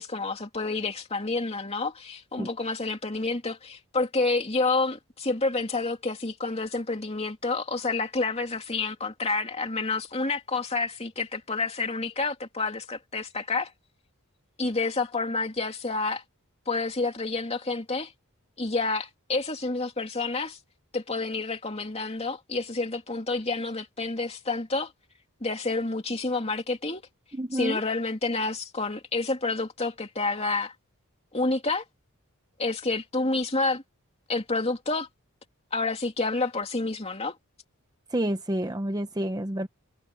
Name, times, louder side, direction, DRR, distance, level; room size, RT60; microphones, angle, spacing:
voice 1, 0.0-13.7 14.6-16.2 16.7-18.1 18.6-20.6 20.9-24.9 25.4-27.0 27.5-30.7 31.3-31.8 32.6-33.8 34.3-35.1 35.7-37.3, left 3 dB, 30° left, 2.7 m, -29 dB
voice 2, 27.3-27.8 38.1-39.7, right 1 dB, 15° right, 0.8 m, -29 dB
head